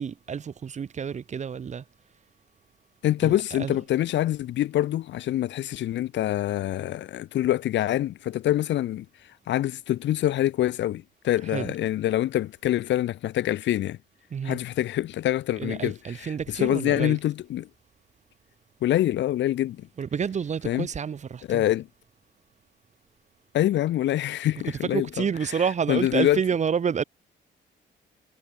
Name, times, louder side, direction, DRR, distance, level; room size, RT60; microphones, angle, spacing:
voice 1, 0.0-1.8 3.2-3.8 11.5-11.7 14.3-14.6 15.6-17.2 20.0-21.6 24.9-27.0, right 7 dB, 35° right, 0.7 m, -29 dB
voice 2, 3.0-9.1 9.5-14.0 14.4-17.7 18.8-19.9 20.6-20.9 21.5-21.9 23.5-25.6 25.9-26.4, left 13 dB, 65° left, 0.6 m, -25 dB
cardioid pair, 90°, 20 cm